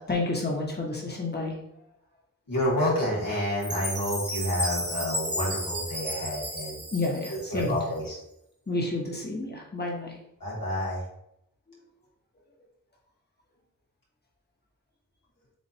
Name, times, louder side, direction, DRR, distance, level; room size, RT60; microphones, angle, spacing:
voice 1, 0.0-1.6 6.9-7.8 8.7-10.2 11.7-11.8, left 2 dB, 30° left, -2 dB, 1.1 m, -30 dB
voice 2, 2.5-6.8 7.5-8.1 10.4-11.0, left 1 dB, 90° left, -5 dB, 1.6 m, -29 dB
Chime, 3.6-7.8, equal, 45° right, 1.5 m, -33 dB
7.4 x 2.5 x 2.8 m, 0.78 s
wide cardioid pair, 40°, 33 cm